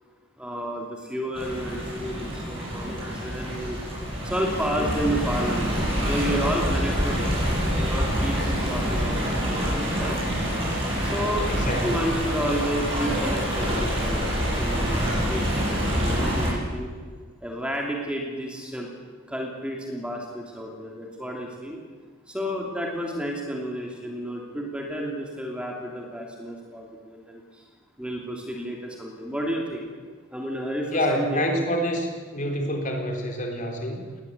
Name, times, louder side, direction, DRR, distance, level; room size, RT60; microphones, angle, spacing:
voice 1, 0.4-3.8 4.2-10.2 11.0-11.5 11.8-16.9 17.4-18.9 19.3-21.8 22.3-27.6 28.0-29.8 30.3-31.5, equal, 5° right, 0 dB, 2.8 m, -31 dB
Stream, 1.3-16.5, equal, 25° right, 7.8 m, -26 dB
voice 2, 11.5-12.0 30.9-32.1 32.3-34.2, equal, 40° left, 3 dB, 3.9 m, -27 dB
20.0 x 19.0 x 8.4 m, 1.5 s
head